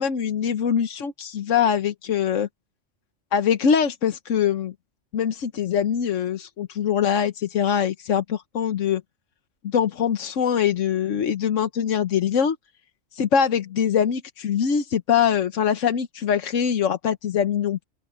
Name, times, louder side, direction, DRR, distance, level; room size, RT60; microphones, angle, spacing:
voice 1, 0.0-2.5 3.3-4.7 5.1-9.0 9.6-12.6 13.1-17.8, left 8 dB, 85° left, 1.3 m, -23 dB
open air
omnidirectional pair, 1.3 m